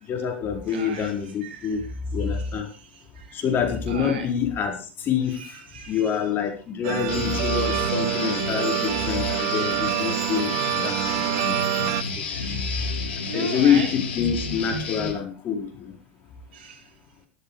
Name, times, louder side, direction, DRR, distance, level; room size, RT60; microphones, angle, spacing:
voice 1, 0.1-1.8 2.1-2.7 3.3-5.6 5.9-12.2 13.3-15.9, left 7 dB, 40° left, 5 dB, 4.6 m, -26 dB
voice 2, 0.7-1.1 1.4-1.8 2.2-2.5 2.9-3.4 3.9-4.3 5.4-6.0 7.4-7.9 8.2-8.3 8.6-8.8 9.4-10.0 10.5-10.7 12.3-13.9 16.5-16.8, right 7 dB, 75° right, 5 dB, 3.8 m, -39 dB
sound 1, 6.8-12.0, right 18 dB, 55° right, 0.8 m, -26 dB
Guitar, 7.1-15.1, left 5 dB, 75° left, 3.4 m, -31 dB
13.0 x 12.5 x 4.9 m, 0.35 s
hypercardioid pair, 95°, 6 cm